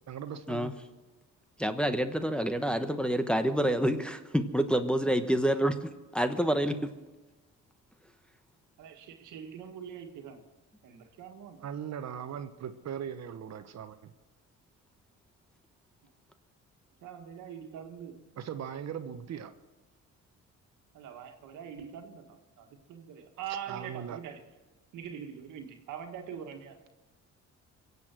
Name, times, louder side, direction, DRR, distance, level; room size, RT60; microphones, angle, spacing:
voice 1, 0.1-0.7 11.6-14.1 18.4-19.5 23.7-24.2, right 8 dB, 60° right, 1.0 m, -39 dB
voice 2, 1.6-6.9, right 1 dB, 5° left, 1.0 m, -28 dB
voice 3, 8.8-10.5 10.8-11.7 16.0-16.1 17.0-18.3 20.9-24.5 24.9-26.9, right 8 dB, 85° right, 1.7 m, -43 dB
23.5 x 8.2 x 6.1 m
cardioid pair, 90°, 30 cm